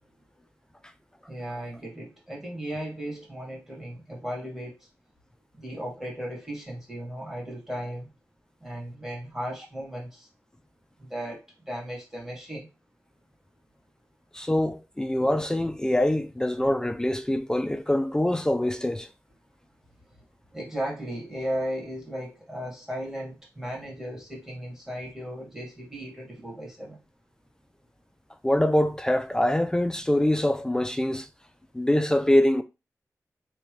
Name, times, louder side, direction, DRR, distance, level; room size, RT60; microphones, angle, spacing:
voice 1, 1.3-4.7 5.5-8.1 8.6-10.3 11.0-12.7 20.5-27.0, equal, 5° right, 1.8 m, -36 dB
voice 2, 14.3-19.1 28.4-31.3 31.7-32.6, left 1 dB, 10° left, 0.3 m, -24 dB
3.3 x 2.8 x 3.1 m
wide cardioid pair, 100°, 6 cm